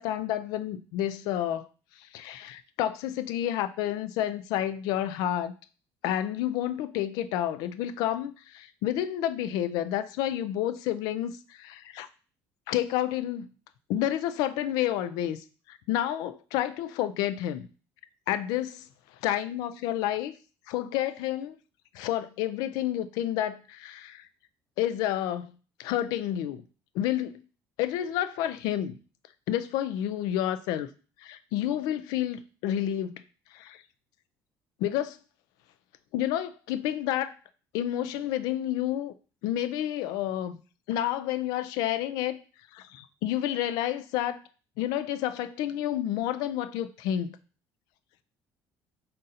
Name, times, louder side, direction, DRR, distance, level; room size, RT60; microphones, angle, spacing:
voice 1, 0.0-1.7 2.0-5.5 6.0-12.1 12.7-13.5 13.9-17.7 18.3-18.9 19.2-20.3 20.7-21.5 21.9-24.3 24.8-25.5 25.8-26.6 26.9-27.4 27.8-29.0 29.5-30.9 31.2-33.2 33.5-33.8 34.8-35.2 36.1-37.3 37.7-39.1 39.4-40.6 40.9-42.4 42.7-44.4 44.8-47.4, left 12 dB, 70° left, 0.4 m, -30 dB
3.8 x 2.6 x 4.0 m
cardioid pair, 175°, 7 cm